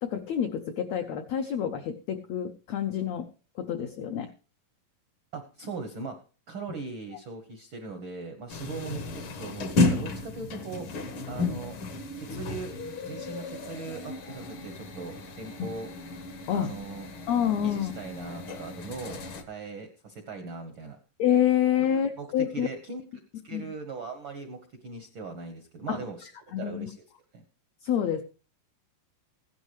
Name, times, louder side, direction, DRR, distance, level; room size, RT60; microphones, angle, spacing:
voice 1, 0.0-3.3 3.5-4.3 11.3-11.5 16.5-16.7 17.3-17.9 21.2-22.7 23.5-23.6 25.9-26.0 26.5-26.9 27.8-28.2, left 9 dB, 85° left, 7 dB, 1.5 m, -27 dB
voice 2, 5.3-6.2 6.5-9.0 9.4-10.9 11.3-11.8 12.3-12.7 13.0-15.9 16.5-17.1 17.6-19.2 19.5-21.0 21.9-23.0 23.4-27.0 27.3-27.4, right 4 dB, 75° right, 6 dB, 1.1 m, -39 dB
sound 1, 8.5-19.4, left 3 dB, 65° left, 1.3 m, -33 dB
16.0 x 11.0 x 3.1 m, 0.35 s
omnidirectional pair, 3.9 m